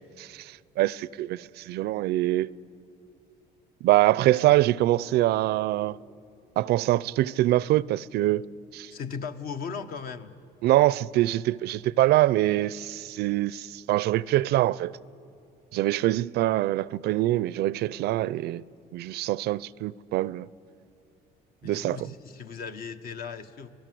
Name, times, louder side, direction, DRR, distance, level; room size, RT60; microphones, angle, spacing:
voice 1, 0.2-2.5 3.8-6.0 6.6-8.5 8.7-8.9 10.6-15.0 15.7-18.6 18.9-20.5 21.6-22.1, right 15 dB, 75° right, 0.5 m, -24 dB
voice 2, 8.9-10.3 21.6-23.7, left 6 dB, 60° left, 1.3 m, -37 dB
26.5 x 17.5 x 7.7 m
cardioid pair, 110°, 17 cm